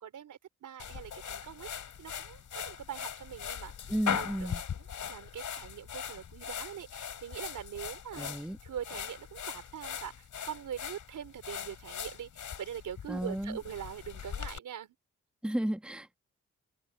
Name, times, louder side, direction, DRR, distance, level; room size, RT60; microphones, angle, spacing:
voice 1, 0.0-4.3 4.8-8.3 8.6-14.9, right 9 dB, 80° right, 4.0 m, -43 dB
sound 1, 0.8-14.6, left 8 dB, 75° left, 4.2 m, -40 dB
voice 2, 3.9-4.6 8.2-8.6 13.1-13.6 15.4-16.2, right 1 dB, 5° right, 1.4 m, -33 dB
cardioid pair, 65°, 30 cm